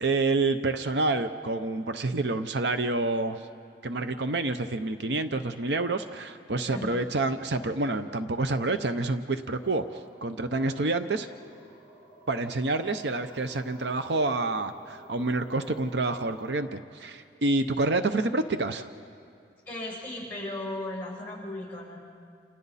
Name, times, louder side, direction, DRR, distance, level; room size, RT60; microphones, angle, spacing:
voice 1, 0.0-3.4 3.8-9.8 10.2-11.3 12.3-18.9, right 2 dB, 75° right, 9 dB, 0.8 m, -28 dB
voice 2, 6.6-7.0 19.7-22.0, left 1 dB, 10° left, -5 dB, 7.0 m, -36 dB
sound 1, 9.5-16.6, right 1 dB, 10° right, 6.6 m, -53 dB
28.5 x 28.5 x 4.2 m, 2.4 s
head